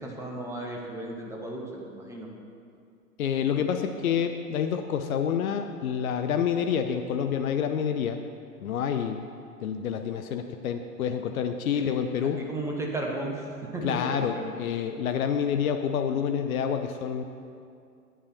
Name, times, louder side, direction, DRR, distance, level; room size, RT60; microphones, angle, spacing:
voice 1, 0.0-2.3 11.7-11.8 12.4-13.5 13.7-14.5, right 2 dB, 5° right, -1 dB, 1.2 m, -34 dB
voice 2, 3.2-8.2 8.6-9.3 9.6-12.4 13.8-17.2, left 8 dB, 60° left, 7 dB, 0.7 m, -28 dB
10.5 x 8.5 x 4.5 m, 2.4 s
figure-of-eight pair, 110°, 47 cm